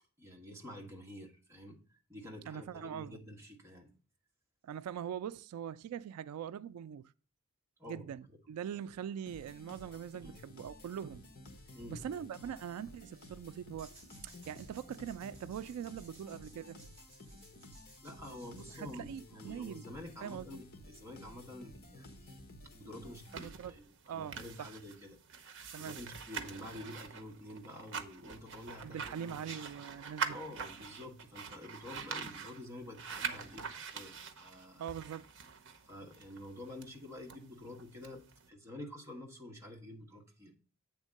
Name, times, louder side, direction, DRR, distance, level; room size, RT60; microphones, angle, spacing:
voice 1, 0.2-3.9 7.8-8.0 10.2-10.5 11.7-12.2 18.0-22.4 22.7-25.2 25.8-29.7 30.3-34.8 35.8-40.5, left 1 dB, 15° right, 1.3 m, -49 dB
voice 2, 2.5-3.2 4.6-7.1 7.9-11.3 11.9-14.0 14.2-16.8 18.5-19.8 20.2-20.6 23.3-23.8 24.1-24.7 25.7-26.0 28.8-30.4 34.8-35.3, right 9 dB, 90° right, 0.3 m, -42 dB
sound 1, 9.3-23.8, left 1 dB, 45° left, 1.2 m, -54 dB
sound 2, 13.8-19.5, right 1 dB, 30° right, 4.2 m, -61 dB
sound 3, 23.0-38.5, right 6 dB, 60° right, 0.8 m, -45 dB
8.2 x 3.6 x 6.3 m
head